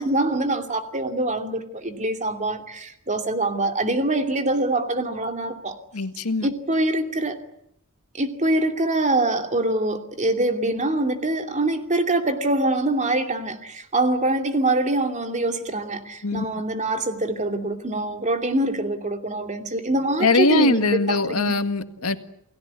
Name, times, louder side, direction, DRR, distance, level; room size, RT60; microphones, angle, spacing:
voice 1, 0.0-5.8 6.4-7.4 8.1-21.5, right 2 dB, 35° right, 6 dB, 2.7 m, -24 dB
voice 2, 5.9-6.5 16.2-16.4 20.2-22.2, left 3 dB, 75° left, 9 dB, 1.8 m, -21 dB
29.0 x 18.0 x 9.6 m, 0.75 s
head